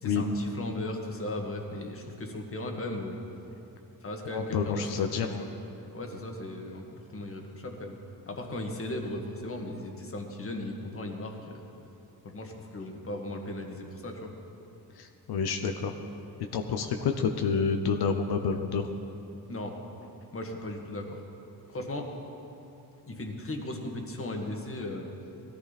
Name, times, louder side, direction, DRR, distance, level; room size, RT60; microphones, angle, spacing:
voice 1, 0.0-3.2 4.0-4.9 5.2-5.5 5.9-8.0 8.3-11.6 12.2-14.3 19.5-19.8 20.3-21.2 21.7-22.1 23.0-25.1, left 1 dB, 35° left, 2 dB, 1.9 m, -37 dB
voice 2, 4.3-5.4 15.0-15.9 16.5-18.9, left 5 dB, 85° left, 6 dB, 0.9 m, -29 dB
18.0 x 13.5 x 4.2 m, 2.9 s
cardioid pair, 95°, 37 cm